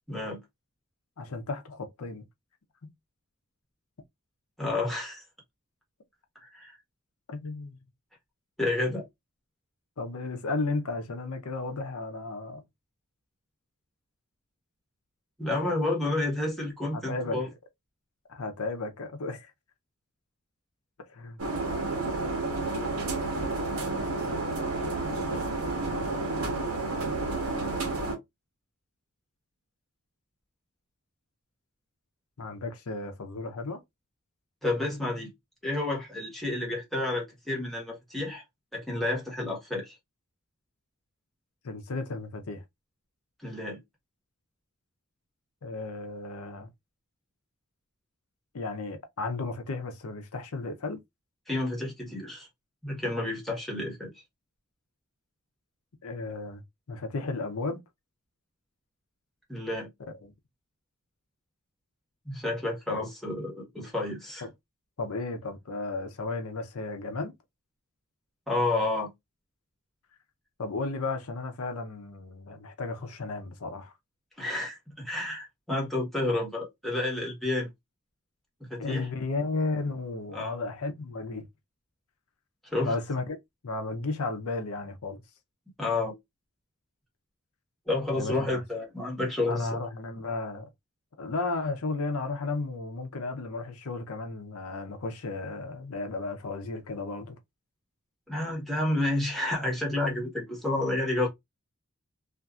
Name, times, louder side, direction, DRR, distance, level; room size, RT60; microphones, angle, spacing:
voice 1, 0.1-0.4 4.6-5.2 6.3-6.8 8.6-9.1 15.4-17.5 34.6-35.3 35.6-38.4 38.7-40.0 43.4-43.8 51.5-52.5 52.8-54.1 59.5-59.9 62.2-64.5 68.5-69.1 74.4-77.7 78.7-79.1 80.3-80.5 82.7-82.9 85.8-86.1 87.9-89.8 98.3-101.3, left 2 dB, ahead, 1.2 m, -30 dB
voice 2, 1.2-2.2 2.8-2.9 7.3-7.8 10.0-12.6 17.1-17.4 18.3-19.5 21.1-21.4 32.4-33.8 41.6-42.6 45.6-46.7 48.5-51.0 56.0-56.6 56.9-57.8 60.0-60.2 62.9-63.0 64.4-64.5 65.0-67.3 70.6-73.9 78.8-81.5 82.8-83.4 83.6-85.2 88.2-88.6 89.5-90.7 91.2-97.3, left 3 dB, 85° left, 0.7 m, -34 dB
sound 1, 21.4-28.2, right 2 dB, 85° right, 1.0 m, -30 dB
2.6 x 2.5 x 2.3 m
head